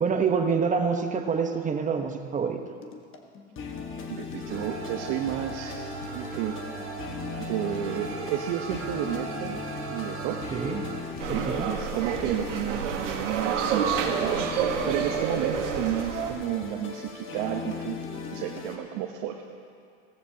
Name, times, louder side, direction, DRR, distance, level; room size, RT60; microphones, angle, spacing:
voice 1, 0.0-2.6 10.5-10.8 11.3-11.7, right 5 dB, 20° right, 5 dB, 1.1 m, -26 dB
sound 1, 2.8-18.8, left 5 dB, 35° left, 1.5 m, -39 dB
voice 2, 4.0-6.6 7.4-9.6 9.9-10.4 11.2-19.4, right 10 dB, 60° right, 2 dB, 1.1 m, -32 dB
sound 2, 4.5-11.0, right 4 dB, 35° right, 1.7 m, -38 dB
sound 3, 11.2-16.3, right 7 dB, 80° right, 1.5 m, -29 dB
17.0 x 14.5 x 2.9 m, 2.3 s
hypercardioid pair, 105°, 36 cm